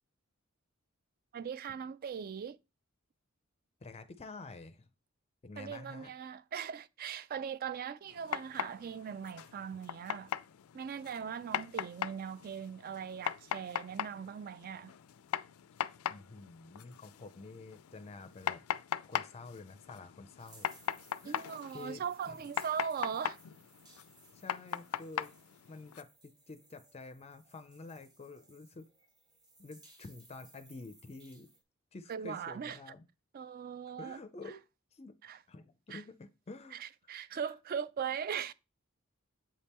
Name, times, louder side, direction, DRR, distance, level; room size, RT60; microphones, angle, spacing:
voice 1, 1.3-2.6 5.6-10.3 10.7-14.9 21.2-23.4 32.1-32.8 33.3-34.2 35.2-35.4 35.9-36.0 36.7-38.5, right 7 dB, 45° right, 0.3 m, -40 dB
voice 2, 3.8-4.9 5.4-6.1 16.1-18.6 19.0-20.7 21.2-22.5 24.3-25.3 25.7-28.9 29.6-31.5 31.9-33.1 34.0-34.6 34.9-35.2 35.5-36.8 37.3-37.5, left 3 dB, 30° left, 0.5 m, -49 dB
sound 1, 8.1-26.0, left 9 dB, 85° left, 0.4 m, -40 dB
sound 2, 20.4-31.6, right 2 dB, 20° right, 0.9 m, -62 dB
7.6 x 3.5 x 4.2 m
head